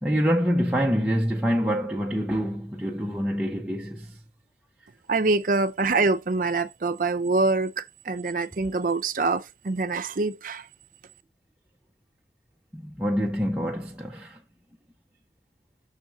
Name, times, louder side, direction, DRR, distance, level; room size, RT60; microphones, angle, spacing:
voice 1, 0.0-4.2 12.7-14.4, equal, 5° right, 0.8 m, -26 dB
voice 2, 5.1-10.7, right 3 dB, 50° right, 0.6 m, -25 dB
6.5 x 4.3 x 6.1 m
head